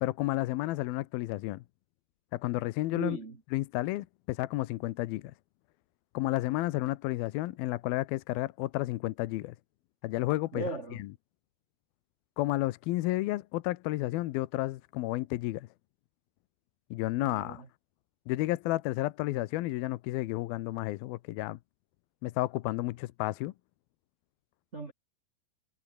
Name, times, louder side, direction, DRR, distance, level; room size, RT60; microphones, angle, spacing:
voice 1, 0.0-1.6 2.3-3.2 3.5-5.2 6.1-9.6 10.0-10.6 12.4-15.7 16.9-17.6 18.3-21.6 22.2-23.5, left 17 dB, 80° left, 2.4 m, -31 dB
voice 2, 2.9-3.4 10.5-11.0 17.2-17.7 24.7-24.9, right 3 dB, 75° right, 0.6 m, -38 dB
omnidirectional pair, 4.8 m